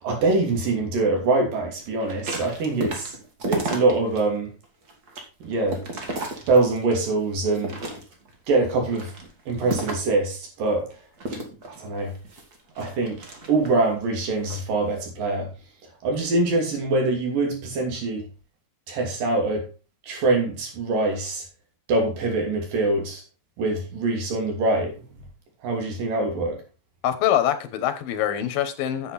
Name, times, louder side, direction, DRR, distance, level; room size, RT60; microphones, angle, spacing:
voice 1, 0.0-3.2 3.5-4.5 5.4-5.8 6.5-7.8 8.5-9.1 9.5-10.9 11.7-12.2 12.8-15.5 16.0-18.3 18.9-19.7 20.0-21.4 21.9-23.2 23.6-25.0 25.6-26.6, right 3 dB, 75° right, 4.4 m, -24 dB
sound 1, 2.0-4.2 4.6-7.0 7.4-8.3 8.8-10.2 11.2-13.8 14.3-14.6, right 2 dB, 35° right, 1.8 m, -33 dB
voice 2, 27.0-29.1, left 11 dB, 90° left, 3.0 m, -24 dB
9.4 x 8.0 x 4.2 m
omnidirectional pair, 4.0 m